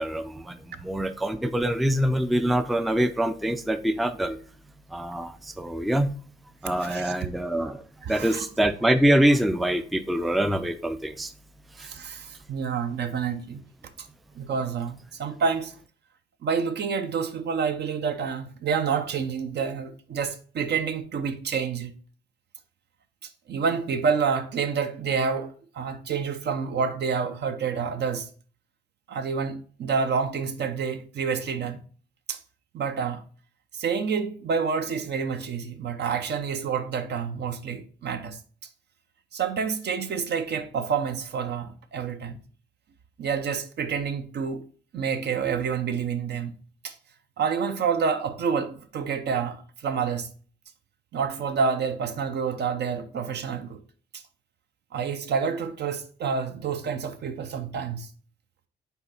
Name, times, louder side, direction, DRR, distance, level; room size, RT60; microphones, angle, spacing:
voice 1, 0.0-4.4 4.9-6.1 6.6-11.3, right 1 dB, ahead, 0.4 m, -25 dB
voice 2, 6.8-7.1 8.0-8.4 11.8-13.6 14.3-15.7 16.4-21.9 23.5-28.3 29.1-31.8 32.3-32.4 32.7-33.2 33.7-38.4 39.3-42.4 43.2-44.6 44.9-46.6 46.8-46.9 47.4-50.3 51.1-53.8 54.9-58.1, right 6 dB, 60° right, 0.8 m, -28 dB
5.7 x 4.0 x 4.2 m
cardioid pair, 90°, 20 cm